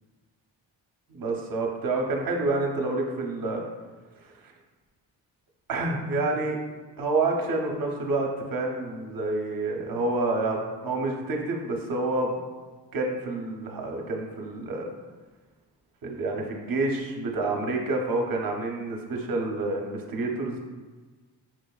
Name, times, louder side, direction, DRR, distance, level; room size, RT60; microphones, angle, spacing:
voice 1, 1.1-3.6 4.2-4.3 5.7-6.6 7.0-12.4 12.9-14.9 16.0-20.6, right 2 dB, 50° right, 1 dB, 0.7 m, -28 dB
5.6 x 2.5 x 2.3 m, 1.3 s
wide cardioid pair, 125°, 44 cm